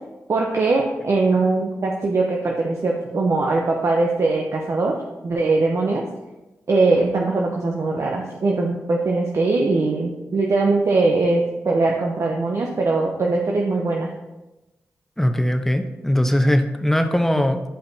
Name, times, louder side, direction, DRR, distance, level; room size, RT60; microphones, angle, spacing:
voice 1, 0.3-4.9 5.2-6.0 6.7-14.1, right 3 dB, 60° right, 0 dB, 0.8 m, -21 dB
voice 2, 15.2-17.6, equal, 5° left, 6 dB, 0.8 m, -20 dB
10.0 x 5.1 x 2.8 m, 1.0 s
cardioid pair, 45°, 5 cm